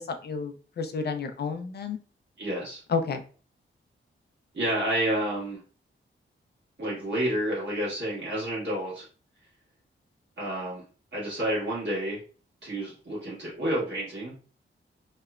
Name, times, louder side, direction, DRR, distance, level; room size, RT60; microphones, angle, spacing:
voice 1, 0.0-2.0 2.9-3.2, left 5 dB, 50° left, 7 dB, 0.4 m, -31 dB
voice 2, 2.4-2.8 4.5-5.6 6.8-9.0 10.4-10.8 11.1-12.2 12.6-14.3, right 1 dB, 55° right, -7 dB, 1.3 m, -29 dB
2.9 x 2.1 x 2.3 m, 0.38 s
wide cardioid pair, 115°, 21 cm